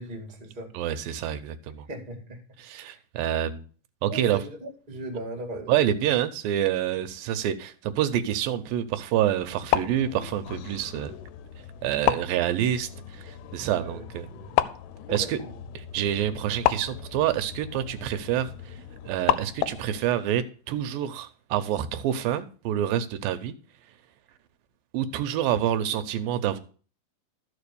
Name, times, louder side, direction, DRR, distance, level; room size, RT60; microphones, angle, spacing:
voice 1, 0.0-0.7 1.9-2.4 2.7-3.0 4.1-6.2 13.5-14.6 15.1-15.6, right 1 dB, 20° right, 1.4 m, -39 dB
voice 2, 0.7-1.9 2.6-3.6 4.0-4.4 5.7-11.1 11.8-14.3 15.1-15.4 15.8-18.8 19.1-23.6 24.9-26.6, right 11 dB, 85° right, 2.5 m, -27 dB
sound 1, 9.4-20.0, left 14 dB, 90° left, 2.4 m, -32 dB
13.0 x 4.8 x 6.8 m
omnidirectional pair, 4.1 m